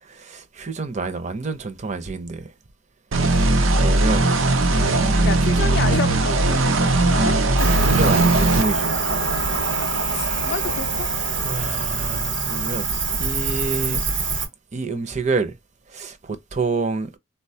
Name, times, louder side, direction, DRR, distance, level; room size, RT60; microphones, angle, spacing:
voice 1, 0.0-2.5 3.2-4.3 4.9-5.6 7.7-9.0 9.9-10.5 11.4-12.9 13.2-14.0 14.7-15.6 15.9-17.1, right 4 dB, 35° right, 0.6 m, -28 dB
sound 1, 3.1-8.6, right 2 dB, 90° right, 0.6 m, -18 dB
voice 2, 5.2-7.4 7.8-7.9 10.1-11.1, left 5 dB, 60° left, 0.4 m, -30 dB
Cricket, 7.6-14.5, right 4 dB, 65° right, 1.0 m, -24 dB
3.9 x 2.2 x 2.6 m
head